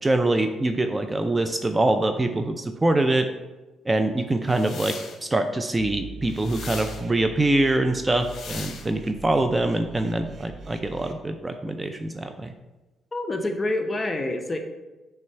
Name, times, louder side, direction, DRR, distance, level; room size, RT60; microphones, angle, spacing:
voice 1, 0.0-3.3 3.9-5.0 5.2-12.5, right 2 dB, 20° right, 7 dB, 0.4 m, -24 dB
sound 1, 4.5-5.2 6.3-7.0 8.2-8.9, left 5 dB, 60° left, 0.9 m, -39 dB
sound 2, 5.8-11.1, right 3 dB, 50° right, 0.7 m, -42 dB
voice 2, 13.1-14.6, left 2 dB, 25° left, 5 dB, 0.7 m, -27 dB
6.1 x 3.4 x 4.5 m, 1.1 s
cardioid pair, 90°, 0 cm